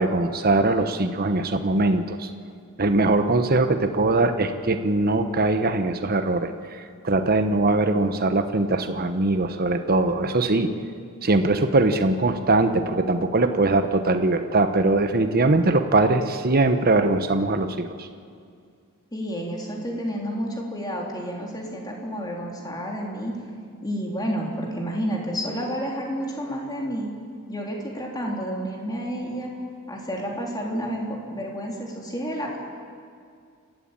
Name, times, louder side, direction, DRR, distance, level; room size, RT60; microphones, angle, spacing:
voice 1, 0.0-2.3 2.8-10.7 11.2-18.1, right 2 dB, 45° right, 8 dB, 1.0 m, -21 dB
voice 2, 19.1-23.4 23.8-27.1 27.5-29.5 29.9-32.6, equal, 20° left, -1 dB, 3.5 m, -30 dB
29.0 x 12.5 x 8.9 m, 2.2 s
head